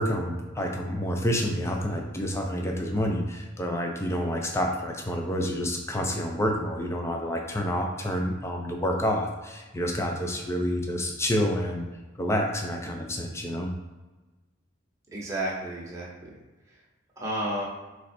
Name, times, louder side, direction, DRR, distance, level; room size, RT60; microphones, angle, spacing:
voice 1, 0.0-11.9 12.2-13.7, equal, 15° left, 1 dB, 0.5 m, -28 dB
voice 2, 15.1-16.3 17.2-17.7, right 1 dB, 15° right, -5 dB, 1.0 m, -31 dB
3.8 x 3.2 x 4.2 m, 1.2 s
head